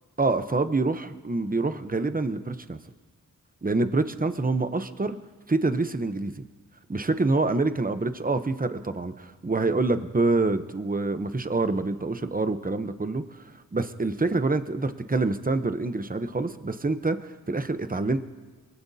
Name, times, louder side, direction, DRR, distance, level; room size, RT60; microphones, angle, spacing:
voice 1, 0.2-2.8 3.6-5.2 5.5-6.3 6.9-13.4 13.7-18.2, right 3 dB, 25° right, 10 dB, 0.8 m, -26 dB
24.0 x 15.5 x 2.8 m, 1.4 s
wide cardioid pair, 50°, 36 cm